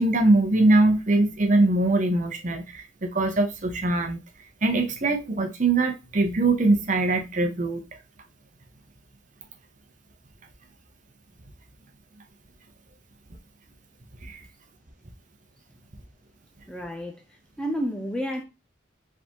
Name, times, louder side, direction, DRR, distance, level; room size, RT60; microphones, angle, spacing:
voice 1, 0.0-4.2 4.6-7.8 14.2-14.4, right 2 dB, 40° right, 0.8 m, -22 dB
voice 2, 16.7-17.2 17.6-18.4, equal, 5° left, 0.5 m, -30 dB
4.8 x 3.5 x 2.9 m
head